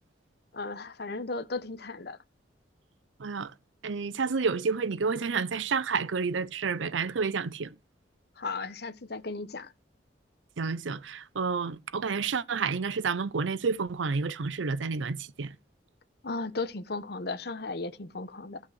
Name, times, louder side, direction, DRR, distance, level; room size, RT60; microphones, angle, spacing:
voice 1, 0.5-2.2 8.4-9.7 16.2-18.6, left 3 dB, 60° left, 1.0 m, -35 dB
voice 2, 3.2-3.5 3.8-7.7 10.6-15.6, right 5 dB, 85° right, 0.6 m, -30 dB
14.0 x 5.5 x 6.4 m
head